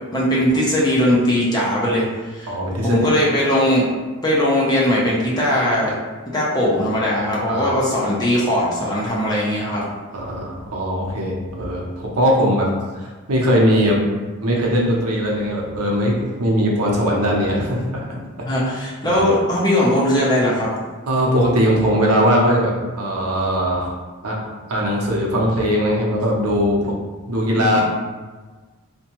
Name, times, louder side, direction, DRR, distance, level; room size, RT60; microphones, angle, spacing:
voice 1, 0.1-2.0 2.3-2.5 2.8-3.8 4.2-5.9 6.3-9.8 18.4-20.7 27.6-27.8, left 1 dB, 20° left, -6 dB, 0.5 m, -19 dB
voice 2, 2.5-3.1 7.5-7.7 10.1-12.7 13.0-14.0 14.4-18.0 19.0-19.2 21.1-23.9 24.2-24.3 24.7-26.9 27.3-27.8, equal, 85° right, -2 dB, 0.6 m, -20 dB
2.6 x 2.1 x 2.9 m, 1.3 s
head